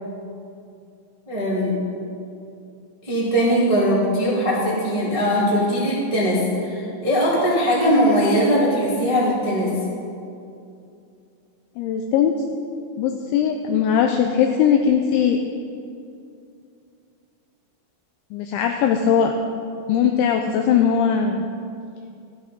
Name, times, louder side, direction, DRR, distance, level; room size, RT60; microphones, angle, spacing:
voice 1, 1.3-1.7 3.0-9.7, equal, 20° right, -7 dB, 0.8 m, -20 dB
voice 2, 11.8-12.4 13.0-15.4 18.3-19.3 19.9-21.5, left 8 dB, 85° left, 4 dB, 2.6 m, -19 dB
14.0 x 9.4 x 5.2 m, 2.5 s
omnidirectional pair, 5.9 m